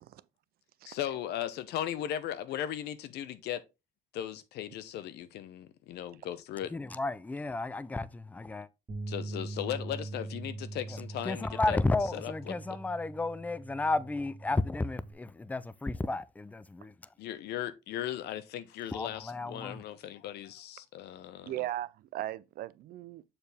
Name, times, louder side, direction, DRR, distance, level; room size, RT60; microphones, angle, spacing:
voice 1, 0.9-3.6 4.1-6.7 9.1-11.8 12.1-12.8 17.2-21.5, left 11 dB, 75° left, 0.8 m, -37 dB
voice 2, 6.7-8.7 11.3-16.9 18.9-19.8, left 2 dB, 10° left, 0.4 m, -32 dB
sound 1, 8.9-15.1, right 2 dB, 30° right, 1.4 m, -42 dB
voice 3, 21.4-23.2, right 14 dB, 65° right, 0.5 m, -38 dB
6.9 x 4.4 x 3.5 m
cardioid pair, 110°, 17 cm